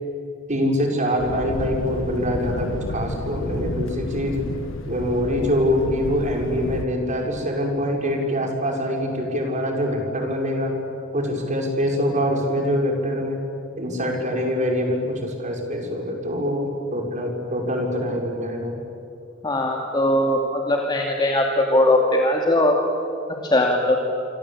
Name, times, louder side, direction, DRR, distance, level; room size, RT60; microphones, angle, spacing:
voice 1, 0.5-4.4 4.9-10.8 11.1-13.4 13.8-16.6 16.9-18.8, equal, 40° right, 2 dB, 5.4 m, -24 dB
Thunder, 1.2-6.9, left 1 dB, 80° left, 1.5 m, -31 dB
voice 2, 19.4-22.7 23.5-24.0, left 1 dB, 20° left, 0 dB, 2.4 m, -20 dB
27.0 x 25.5 x 8.6 m, 2.6 s
head